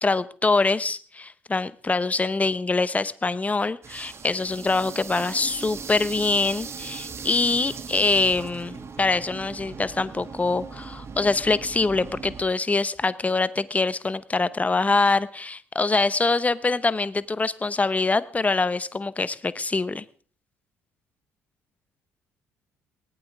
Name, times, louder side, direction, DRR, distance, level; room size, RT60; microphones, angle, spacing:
voice 1, 0.0-20.0, left 3 dB, 20° left, 17 dB, 0.9 m, -24 dB
sound 1, 3.8-12.4, right 5 dB, 40° right, 1.7 m, -39 dB
19.0 x 15.0 x 3.6 m, 0.43 s
hypercardioid pair, 50°, 7 cm